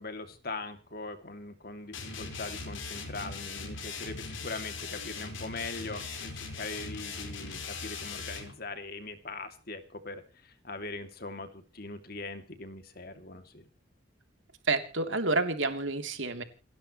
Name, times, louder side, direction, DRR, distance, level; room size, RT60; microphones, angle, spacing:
voice 1, 0.0-13.7, left 3 dB, 50° left, 8 dB, 2.6 m, -41 dB
sound 1, 1.9-8.5, left 4 dB, 80° left, 4.6 m, -40 dB
voice 2, 14.7-16.4, right 3 dB, 80° right, 7 dB, 3.3 m, -29 dB
29.0 x 12.5 x 3.2 m, 0.36 s
head